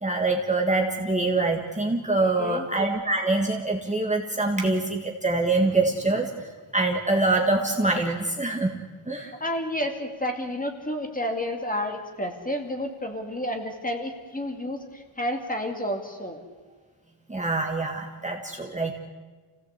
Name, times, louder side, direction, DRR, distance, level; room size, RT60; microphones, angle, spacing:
voice 1, 0.0-8.7 9.0-9.3 17.3-18.9, right 2 dB, 15° right, 1 dB, 1.7 m, -25 dB
voice 2, 2.2-2.7 9.2-16.4, left 1 dB, 15° left, 4 dB, 2.5 m, -31 dB
28.5 x 17.0 x 8.3 m, 1.4 s
wide cardioid pair, 165°, 49 cm